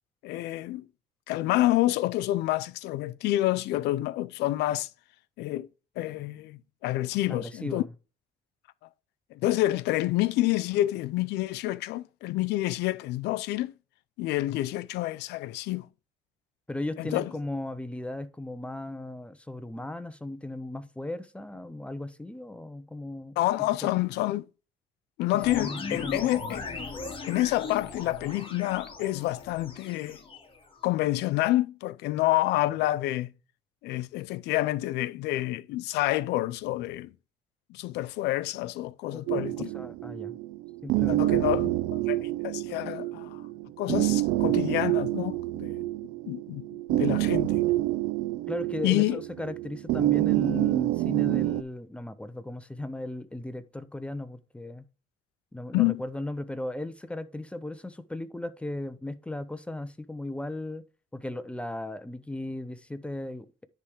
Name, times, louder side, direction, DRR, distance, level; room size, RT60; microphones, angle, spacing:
voice 1, 0.2-0.9 1.3-4.9 5.4-5.7 6.0-7.8 9.3-13.7 14.2-15.9 17.0-17.3 23.4-24.5 25.2-26.6 27.2-30.2 30.8-33.3 33.8-37.1 37.7-39.7 41.1-43.5 43.8-45.9 46.3-47.6 48.8-49.2 55.7-56.0, left 16 dB, 85° left, 0.5 m, -28 dB
voice 2, 7.3-7.9 16.7-23.4 23.8-23.9 25.6-26.4 39.1-39.5 39.7-40.4 40.8-41.8 48.5-54.9 55.5-60.8 61.1-63.6, left 1 dB, 5° left, 0.7 m, -36 dB
sound 1, 25.4-30.8, left 4 dB, 30° left, 2.2 m, -39 dB
sound 2, 39.3-51.6, right 17 dB, 75° right, 0.5 m, -27 dB
10.0 x 3.4 x 4.8 m
cardioid pair, 110°, 17 cm